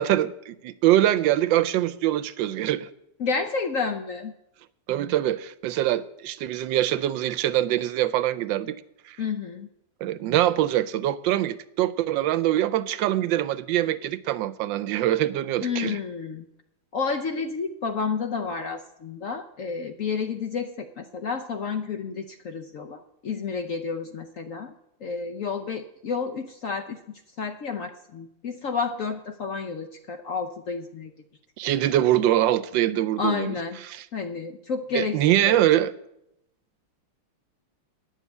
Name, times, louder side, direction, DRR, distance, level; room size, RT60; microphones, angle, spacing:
voice 1, 0.0-2.9 4.9-8.8 9.1-9.2 10.0-16.0 31.6-33.5 33.8-34.0 34.9-35.9, right 13 dB, 75° right, 1.3 m, -23 dB
voice 2, 3.2-4.3 9.2-9.7 15.6-16.4 16.9-24.7 25.0-27.0 27.4-31.1 33.2-33.8 34.1-35.6, left 5 dB, 65° left, 0.8 m, -30 dB
10.0 x 7.4 x 8.1 m
omnidirectional pair, 2.1 m